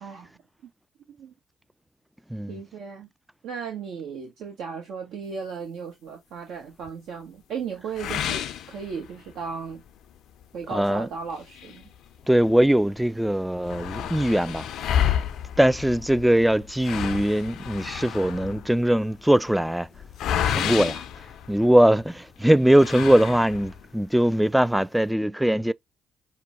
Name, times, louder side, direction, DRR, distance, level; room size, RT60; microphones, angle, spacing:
voice 1, 0.0-0.3 1.1-1.3 2.5-3.1 3.4-9.8 10.5-11.9, right 6 dB, 65° right, 1.0 m, -36 dB
sound 1, 8.0-9.4 9.9-10.0 10.4-10.5 11.3-12.6 13.0-13.1 13.3-22.0 22.7-23.9, left 9 dB, 65° left, 0.5 m, -30 dB
voice 2, 10.7-11.1 12.3-14.7 15.6-19.9 20.5-21.0 21.5-25.7, right 1 dB, 5° right, 0.4 m, -21 dB
5.6 x 2.2 x 3.6 m
hypercardioid pair, 45°, 0 cm